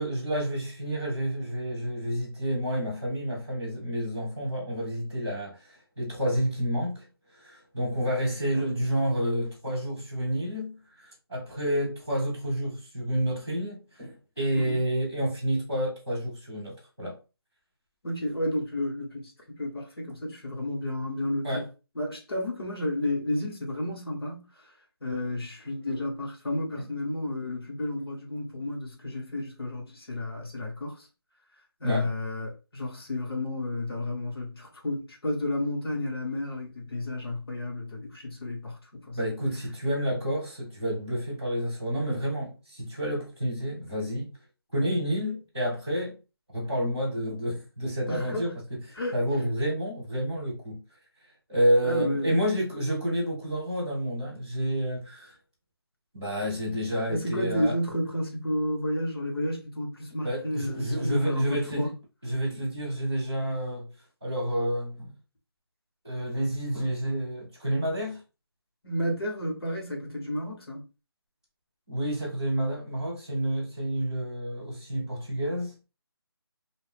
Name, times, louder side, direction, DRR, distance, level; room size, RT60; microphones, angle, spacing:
voice 1, 0.0-5.6 6.0-7.0 7.4-17.2 21.4-21.7 31.8-32.1 39.1-44.4 44.7-46.2 46.5-48.5 49.1-50.8 51.5-55.3 56.1-57.8 60.2-61.9 62.2-63.9 64.2-65.1 66.0-68.2 71.9-75.7, equal, 10° left, 0.4 m, -29 dB
voice 2, 18.0-19.3 19.6-21.6 21.9-24.5 25.0-31.1 31.8-39.4 48.1-48.6 48.9-49.2 51.8-52.4 57.1-61.9 68.8-70.8, left 1 dB, 70° left, 1.3 m, -31 dB
2.6 x 2.0 x 3.3 m
figure-of-eight pair, 180°, 13 cm